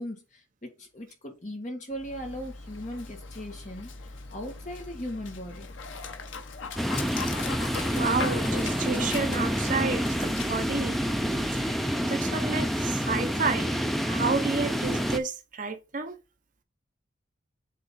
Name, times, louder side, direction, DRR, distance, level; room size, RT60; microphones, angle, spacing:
voice 1, 0.0-3.9 4.3-5.7, equal, 35° left, 1.7 m, -38 dB
Dog, 1.9-11.9, left 4 dB, 75° left, 0.9 m, -40 dB
sound 1, 6.8-15.2, equal, ahead, 0.4 m, -28 dB
voice 2, 7.9-11.0 11.5-13.8 14.0-16.2, right 4 dB, 40° right, 0.9 m, -31 dB
7.7 x 3.2 x 4.1 m
head